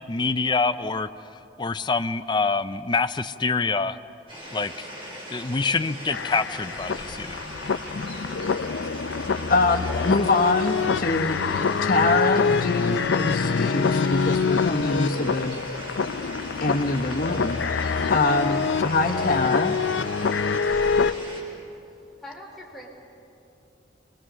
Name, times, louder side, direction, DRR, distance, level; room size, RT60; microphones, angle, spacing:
voice 1, 0.1-1.1 1.6-4.0 4.5-4.9 5.3-7.4, left 4 dB, 25° left, 10 dB, 0.5 m, -25 dB
sound 1, 4.3-21.4, equal, 30° right, 5.4 m, -39 dB
sound 2, 6.1-21.1, left 5 dB, 80° left, 0.6 m, -25 dB
voice 2, 9.5-11.4 11.8-15.6 16.6-17.6 18.1-19.8, left 3 dB, 50° left, 4 dB, 1.1 m, -24 dB
voice 3, 22.2-22.9, left 1 dB, ahead, -4 dB, 3.5 m, -41 dB
28.0 x 21.5 x 6.3 m, 2.8 s
head